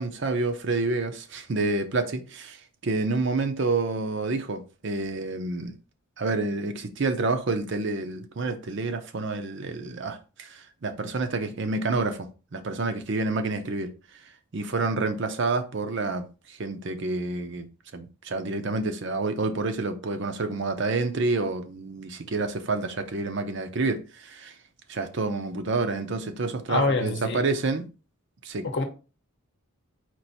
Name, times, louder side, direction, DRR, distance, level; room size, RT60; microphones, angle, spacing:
voice 1, 0.0-5.7 6.2-13.9 14.5-17.7 17.9-24.5 24.9-27.8 28.4-28.7, right 3 dB, 55° right, 0.6 m, -28 dB
voice 2, 26.7-27.4 28.6-28.8, left 3 dB, 55° left, 0.8 m, -25 dB
4.5 x 2.6 x 4.0 m
head